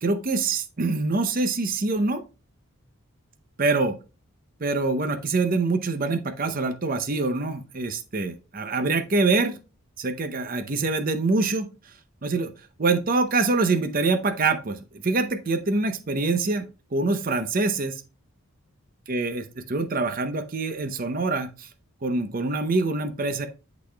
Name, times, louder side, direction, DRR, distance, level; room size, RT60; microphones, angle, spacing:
voice 1, 0.0-2.2 3.6-4.0 4.6-9.6 10.0-11.9 12.2-12.5 12.8-18.0 19.1-21.7 22.0-23.5, right 3 dB, 40° right, 8 dB, 0.6 m, -25 dB
11.5 x 4.1 x 2.2 m, 0.32 s
head